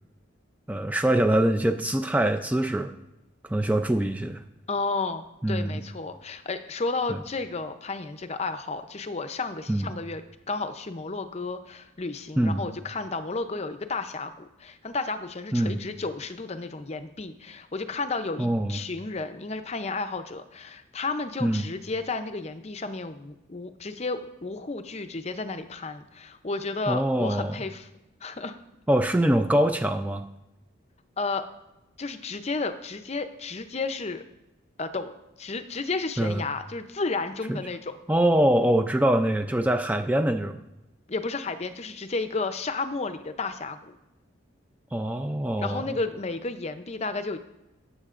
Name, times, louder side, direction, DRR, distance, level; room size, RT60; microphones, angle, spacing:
voice 1, 0.7-2.9 3.4-4.4 5.4-5.8 7.1-7.2 9.7-9.9 12.4-12.6 15.5-15.8 18.4-18.8 21.4-21.7 26.9-27.6 28.9-30.2 36.2-36.4 37.5-37.6 38.1-40.6 44.9-45.9, right 1 dB, 10° right, 6 dB, 0.4 m, -24 dB
voice 2, 4.7-10.2 10.5-27.9 28.2-28.6 31.2-31.5 32.0-34.2 34.8-37.9 41.1-43.9 45.6-47.4, left 3 dB, 35° left, 9 dB, 0.6 m, -32 dB
18.0 x 7.6 x 2.5 m, 0.94 s
head